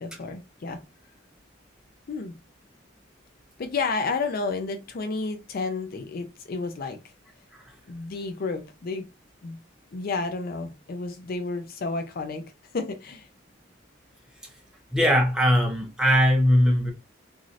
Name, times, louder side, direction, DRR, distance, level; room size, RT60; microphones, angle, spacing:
voice 1, 0.0-0.8 2.1-2.3 3.6-7.1 7.9-9.1 9.4-9.6 9.9-13.3, left 3 dB, 50° left, 0.4 m, -31 dB
voice 2, 14.9-16.9, equal, 5° right, 0.8 m, -20 dB
3.0 x 2.6 x 2.5 m
head